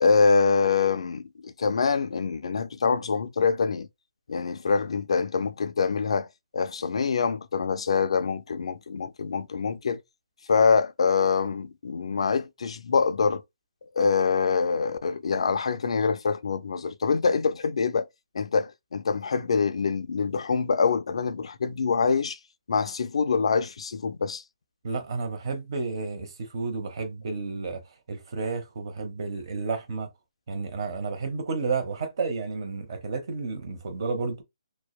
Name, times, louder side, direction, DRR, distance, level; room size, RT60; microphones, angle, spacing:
voice 1, 0.0-3.9 4.3-6.3 6.5-10.0 10.5-13.4 13.9-18.1 18.3-22.4 22.7-24.4, left 5 dB, 75° left, 0.3 m, -25 dB
voice 2, 24.8-27.8 28.1-30.1 30.5-34.4, right 4 dB, 55° right, 0.8 m, -31 dB
2.7 x 2.1 x 2.2 m
hypercardioid pair, 155°, 3 cm